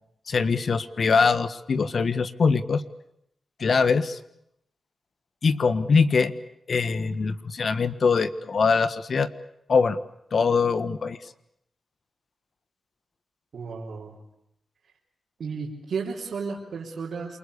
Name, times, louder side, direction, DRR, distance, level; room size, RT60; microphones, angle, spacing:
voice 1, 0.3-2.8 3.6-4.2 5.4-6.3 6.7-9.3 9.7-10.0 10.3-11.2, left 5 dB, 60° left, 13 dB, 1.5 m, -22 dB
voice 2, 13.5-14.2 15.4-17.4, right 5 dB, 75° right, -4 dB, 4.4 m, -33 dB
28.0 x 23.5 x 8.4 m, 0.76 s
cardioid pair, 90°, 0 cm